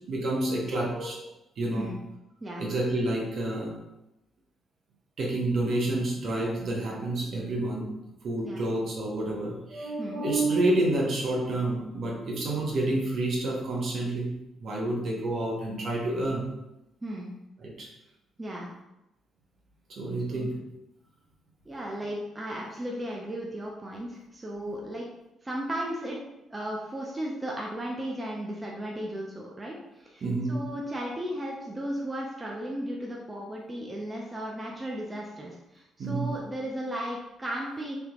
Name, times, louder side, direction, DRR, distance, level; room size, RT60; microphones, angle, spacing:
voice 1, 0.1-1.2 1.6-1.9 2.6-3.7 5.2-7.9 8.2-16.5 17.6-17.9 19.9-20.7 24.6-24.7 30.2-30.7 36.0-36.3, right 2 dB, 55° right, -1 dB, 1.0 m, -29 dB
voice 2, 17.0-17.3 18.4-18.7 20.3-20.5 21.7-25.1 25.4-26.2 26.5-30.2 30.5-38.0, right 1 dB, 20° right, -2 dB, 0.6 m, -35 dB
3.4 x 3.4 x 3.0 m, 0.93 s
cardioid pair, 115°, 0 cm